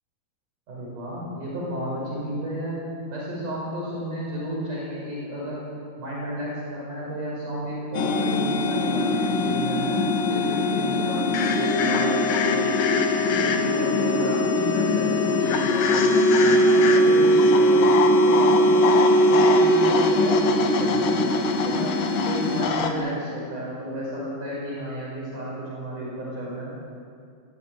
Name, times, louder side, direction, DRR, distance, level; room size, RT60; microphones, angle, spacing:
voice 1, 0.7-2.8 3.1-5.6 6.0-10.0 10.3-13.0 13.4-16.0 16.4-17.9 18.3-21.9 22.3-26.7, equal, 70° right, -5 dB, 7.0 m, -32 dB
sound 1, 7.9-22.7, equal, 90° left, 3.3 m, -21 dB
sound 2, 11.3-13.9 15.5-22.9, left 6 dB, 70° left, 2.8 m, -28 dB
21.5 x 15.0 x 9.3 m, 2.3 s
omnidirectional pair, 3.8 m